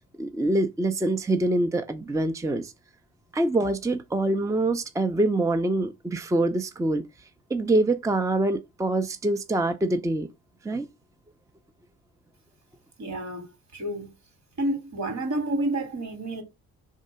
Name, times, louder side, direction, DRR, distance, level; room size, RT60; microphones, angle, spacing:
voice 1, 0.2-2.7 3.3-7.0 7.5-10.3 10.6-10.9, right 2 dB, 10° right, 0.6 m, -25 dB
voice 2, 13.0-14.1 14.6-16.4, right 1 dB, 65° right, 2.7 m, -29 dB
4.7 x 3.7 x 5.4 m
cardioid pair, 90°, 30 cm